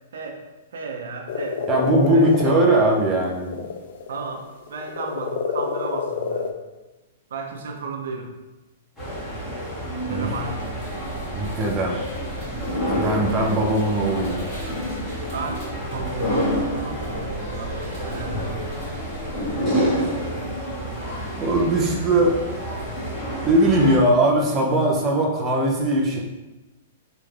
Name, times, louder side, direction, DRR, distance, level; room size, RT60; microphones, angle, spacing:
voice 1, 0.7-1.6 2.1-2.3 4.1-6.5 7.3-8.3 10.1-10.7 15.3-18.9, right 3 dB, 80° right, 3 dB, 0.6 m, -34 dB
sound 1, 1.3-4.3 4.6-6.5, left 6 dB, 55° left, 0.4 m, -27 dB
voice 2, 1.7-3.6 10.1-10.3 11.3-12.0 12.9-14.4 21.4-22.4 23.4-26.2, right 1 dB, 20° right, -2 dB, 0.5 m, -20 dB
sound 2, 9.0-24.0, equal, 10° left, 1.0 m, -28 dB
sound 3, 10.3-19.5, equal, 35° left, 1.3 m, -39 dB
3.2 x 2.4 x 3.3 m, 1.1 s
hypercardioid pair, 160°, 0 cm